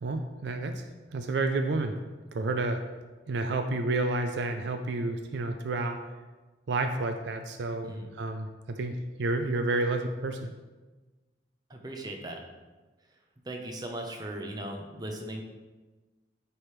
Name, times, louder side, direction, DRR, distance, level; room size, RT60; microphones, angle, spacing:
voice 1, 0.0-1.9 2.3-2.8 3.3-6.0 6.7-10.5, right 2 dB, 65° right, 6 dB, 0.4 m, -30 dB
voice 2, 11.7-12.4 13.4-15.4, right 1 dB, 20° right, 1 dB, 0.6 m, -38 dB
9.9 x 3.4 x 3.1 m, 1.2 s
head